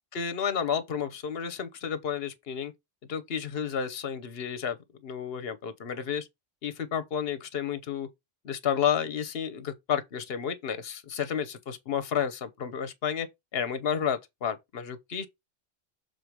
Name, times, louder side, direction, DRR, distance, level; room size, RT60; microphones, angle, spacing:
voice 1, 0.1-2.7 3.1-4.8 5.0-6.3 6.6-8.1 8.4-13.3 13.5-15.3, left 7 dB, 65° left, 1.2 m, -31 dB
6.8 x 4.1 x 4.6 m
omnidirectional pair, 1.1 m